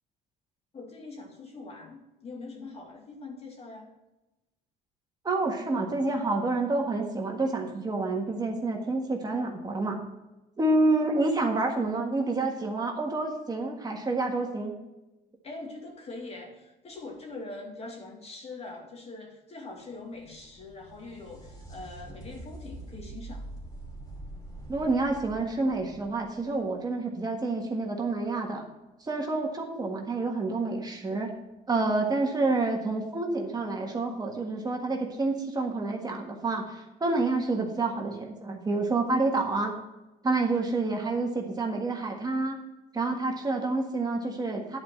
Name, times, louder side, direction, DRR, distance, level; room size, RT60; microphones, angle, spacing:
voice 1, 0.7-3.9 15.4-23.5, left 3 dB, 40° left, 1 dB, 2.3 m, -43 dB
voice 2, 5.2-10.0 10.6-14.7 24.7-28.7 29.0-31.3 31.7-39.7 40.2-42.6 42.9-44.8, right 3 dB, 25° right, 1 dB, 1.6 m, -28 dB
sound 1, 19.9-27.4 30.8-30.9 31.9-32.0, right 2 dB, 20° left, 2.8 m, -45 dB
10.5 x 4.9 x 7.2 m, 1.0 s
cardioid pair, 110°, 17 cm